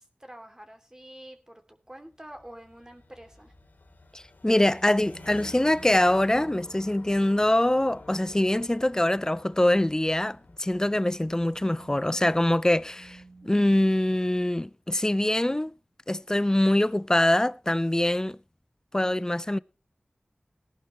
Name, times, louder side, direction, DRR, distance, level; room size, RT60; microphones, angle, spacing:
voice 1, 0.0-3.5, right 1 dB, 20° right, 2.8 m, -47 dB
sound 1, 2.0-13.6, left 3 dB, 85° left, 3.0 m, -51 dB
voice 2, 4.1-15.7 16.1-18.4 18.9-19.6, left 1 dB, 20° left, 0.6 m, -24 dB
sound 2, 4.8-6.9 9.9-10.2 11.1-14.0, right 3 dB, 85° right, 1.8 m, -51 dB
18.5 x 11.0 x 3.1 m
wide cardioid pair, 45°, 3 cm